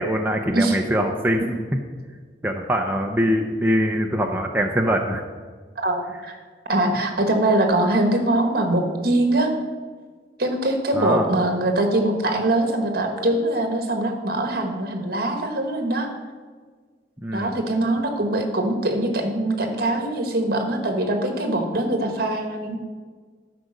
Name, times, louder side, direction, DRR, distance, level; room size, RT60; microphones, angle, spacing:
voice 1, 0.0-1.8 2.4-5.2 10.9-11.3 17.2-17.6, equal, 10° right, 2 dB, 0.5 m, -23 dB
voice 2, 5.8-6.3 6.7-9.5 10.4-16.1 17.3-22.8, right 1 dB, 55° right, 4 dB, 1.4 m, -22 dB
12.0 x 5.0 x 6.4 m, 1.5 s
head